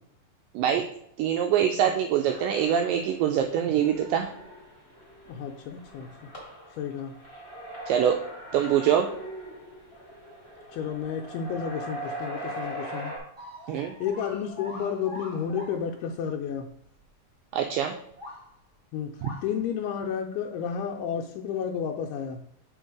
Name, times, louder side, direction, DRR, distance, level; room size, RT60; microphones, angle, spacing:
voice 1, 1.2-4.3 7.9-8.2 8.5-9.1 13.7-13.9 17.5-18.0 19.2-19.3, right 9 dB, 90° right, 5 dB, 1.9 m, -24 dB
sound 1, 2.2-13.2, right 1 dB, 25° left, 1.6 m, -41 dB
voice 2, 5.3-6.1 6.8-7.1 10.7-13.1 13.7-16.7 18.9-19.1 19.4-22.4, left 7 dB, 90° left, 1 dB, 2.6 m, -31 dB
sound 2, 13.4-15.9 16.4-16.5 16.8-16.9 18.1-18.5 19.2-19.5, left 1 dB, 50° right, 0.3 m, -42 dB
6.4 x 4.4 x 4.7 m, 0.74 s
omnidirectional pair, 4.4 m